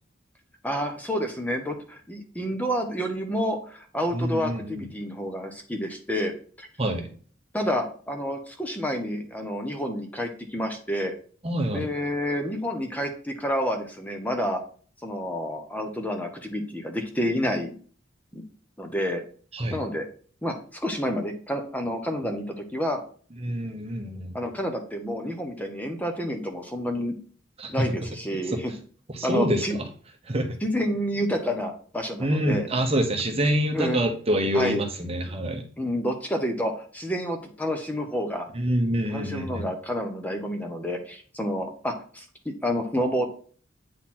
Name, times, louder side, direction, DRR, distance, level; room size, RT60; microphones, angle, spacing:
voice 1, 0.6-6.7 7.5-11.1 11.7-14.6 15.0-17.7 18.3-18.4 18.8-19.2 19.7-20.1 20.4-23.0 24.3-27.2 27.7-28.7 29.2-29.8 30.6-32.7 33.7-34.0 34.5-34.8 35.8-38.5 39.1-43.3, equal, 10° left, 4 dB, 1.0 m, -29 dB
voice 2, 4.1-4.9 6.8-7.1 11.4-11.9 19.5-19.8 23.4-24.3 27.6-27.9 28.5-28.6 29.1-29.9 30.3-30.6 32.2-35.6 38.5-39.7, right 1 dB, 30° right, 4 dB, 1.0 m, -26 dB
8.7 x 4.1 x 4.3 m, 0.42 s
head